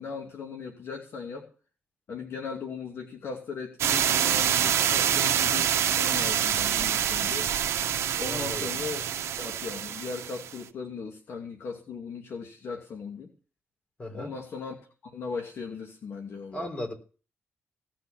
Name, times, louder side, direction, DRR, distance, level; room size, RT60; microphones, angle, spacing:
voice 1, 0.0-1.5 2.1-7.5 8.2-13.3 14.1-14.8 15.0-16.7, left 5 dB, 65° left, 2 dB, 2.6 m, -38 dB
sound 1, 3.8-10.5, right 9 dB, 85° right, 1.0 m, -26 dB
voice 2, 8.3-8.7 14.0-14.3 16.5-16.9, left 1 dB, 30° left, 5 dB, 3.8 m, -35 dB
18.0 x 6.2 x 7.2 m, 0.38 s
cardioid pair, 120°, 5 cm